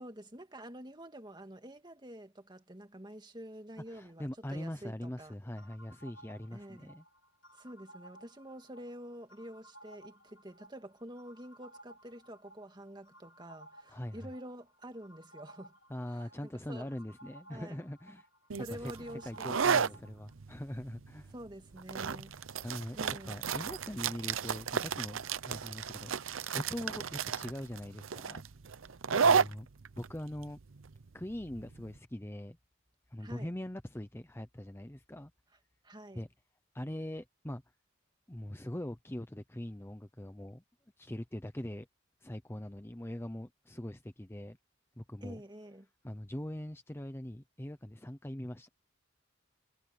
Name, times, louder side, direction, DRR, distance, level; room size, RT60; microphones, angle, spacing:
voice 1, 0.0-5.3 6.5-6.9 7.5-15.7 16.1-16.9 17.5-17.8 18.6-19.9 21.3-22.3 23.0-23.4 29.2-29.4 33.2-33.5 35.8-36.2 45.2-45.9, equal, 20° right, 2.2 m, -48 dB
voice 2, 3.9-7.0 13.9-14.3 15.9-18.3 18.7-18.9 19.2-21.3 22.6-23.0 23.3-25.2 25.4-26.1 26.5-28.4 29.2-29.7 30.0-30.6 31.1-32.6 33.1-35.3 36.1-36.3 36.7-37.6 38.3-40.6 41.0-41.9 42.2-44.6 45.0-45.4 46.0-48.7, left 1 dB, 10° left, 0.8 m, -42 dB
sound 1, 5.6-20.3, right 1 dB, 65° left, 1.8 m, -58 dB
sound 2, 18.5-31.9, right 6 dB, 75° right, 0.7 m, -33 dB
head